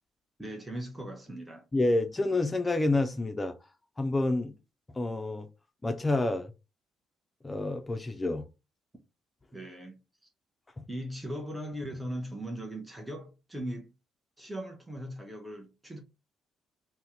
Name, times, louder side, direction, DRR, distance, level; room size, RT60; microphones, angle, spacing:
voice 1, 0.4-1.6 9.5-10.0 10.9-13.9 14.4-16.0, equal, 10° right, 0.8 m, -39 dB
voice 2, 1.7-3.6 4.0-4.5 4.9-5.5 5.8-6.5 7.4-8.5 10.8-10.9, left 2 dB, 25° left, 0.5 m, -28 dB
2.7 x 2.1 x 3.6 m
figure-of-eight pair, 45°, 0 cm